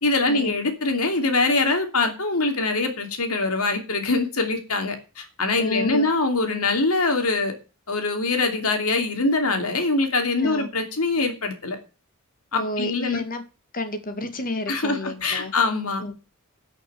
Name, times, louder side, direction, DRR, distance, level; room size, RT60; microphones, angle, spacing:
voice 1, 0.0-7.5 7.9-11.8 12.5-13.2 14.7-16.0, left 3 dB, 75° left, 3.0 m, -23 dB
voice 2, 5.6-6.1 10.4-10.7 12.5-13.4 13.7-15.5 16.0-16.1, left 2 dB, 40° left, 2.1 m, -30 dB
12.0 x 6.5 x 7.1 m
head